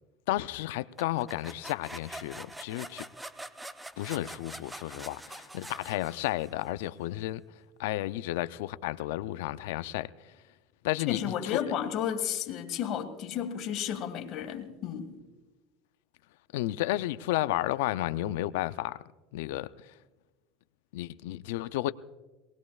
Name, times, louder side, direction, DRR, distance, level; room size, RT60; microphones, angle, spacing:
voice 1, 0.3-3.0 4.0-7.4 7.8-10.1 10.8-11.6 16.5-19.0 19.3-19.9 20.9-21.9, left 15 dB, 80° left, 0.5 m, -32 dB
sound 1, 1.0-6.6, right 1 dB, 5° right, 0.6 m, -45 dB
voice 2, 11.1-15.1, left 9 dB, 50° left, 1.9 m, -32 dB
23.5 x 19.0 x 2.4 m
supercardioid pair, 120°, 0 cm